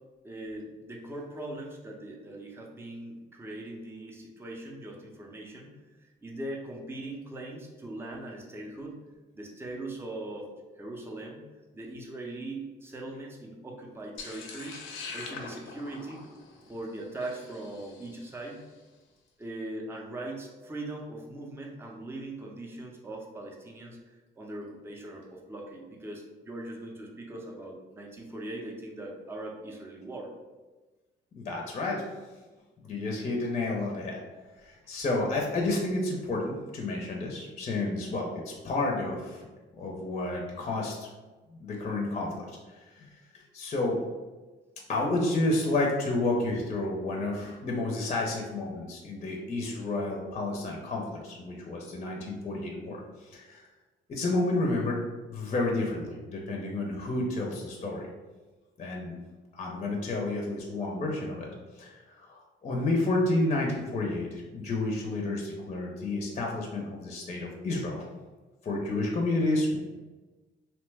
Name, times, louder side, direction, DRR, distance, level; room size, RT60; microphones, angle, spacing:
voice 1, 0.2-5.7 6.0-9.0 9.3-10.5 10.8-11.4 11.7-14.8 15.1-16.2 16.7-18.6 19.4-30.3 47.4-47.5, right 1 dB, 10° right, -1 dB, 0.5 m, -40 dB
sound 1, 14.2-18.5, left 4 dB, 85° left, 0.6 m, -43 dB
voice 2, 31.4-32.1 32.8-34.2 34.6-39.4 39.8-41.1 41.5-44.0 44.9-53.7 54.1-58.1 58.8-59.1 59.5-61.5 61.8-68.1 68.6-69.8, left 2 dB, 35° left, 0 dB, 0.6 m, -30 dB
2.9 x 2.1 x 3.3 m, 1.2 s
cardioid pair, 90°, 20 cm